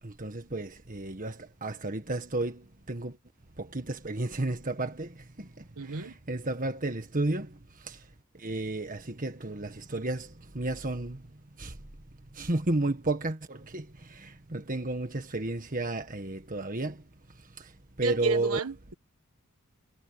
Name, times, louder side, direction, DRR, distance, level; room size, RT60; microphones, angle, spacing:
voice 1, 0.0-3.2 3.6-12.0 12.3-18.6, right 2 dB, 40° right, 1.6 m, -33 dB
voice 2, 5.8-6.1 18.0-18.9, right 5 dB, 80° right, 1.5 m, -32 dB
head